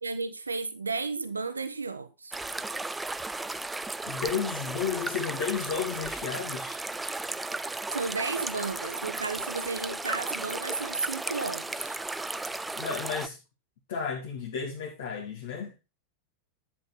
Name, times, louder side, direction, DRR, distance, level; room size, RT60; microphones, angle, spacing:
voice 1, 0.0-2.4 7.9-12.0, right 4 dB, 80° right, 0.8 m, -33 dB
sound 1, 2.3-13.3, right 2 dB, 5° right, 0.6 m, -35 dB
voice 2, 4.1-6.8 12.8-13.4 13.9-15.8, left 7 dB, 55° left, 2.3 m, -33 dB
11.5 x 7.7 x 4.2 m
figure-of-eight pair, 90°, 0 cm